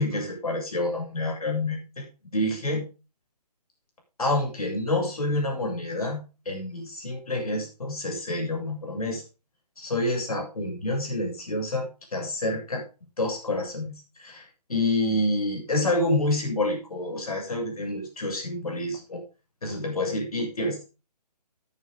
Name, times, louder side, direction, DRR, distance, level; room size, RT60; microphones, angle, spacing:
voice 1, 0.0-2.1 2.3-2.8 4.2-6.2 6.5-9.2 9.8-12.8 13.2-14.4 14.7-19.2 19.6-20.8, left 1 dB, 60° left, 2 dB, 7.3 m, -28 dB
14.0 x 10.0 x 3.8 m, 0.31 s
figure-of-eight pair, 140°, 21 cm